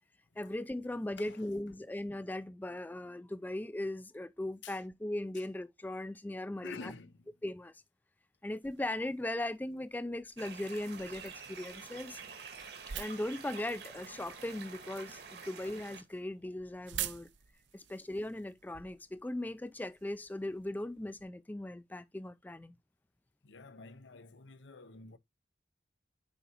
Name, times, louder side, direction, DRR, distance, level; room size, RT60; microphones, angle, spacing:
voice 1, 0.4-6.9 7.4-7.7 8.4-12.2 12.9-17.3 17.7-22.7, left 1 dB, 10° left, 0.3 m, -38 dB
voice 2, 6.6-7.3 23.4-25.2, left 4 dB, 80° left, 0.7 m, -49 dB
sound 1, 8.6-21.2, right 11 dB, 80° right, 0.6 m, -49 dB
sound 2, 10.4-16.0, right 5 dB, 60° right, 1.6 m, -48 dB
6.9 x 4.9 x 2.9 m
head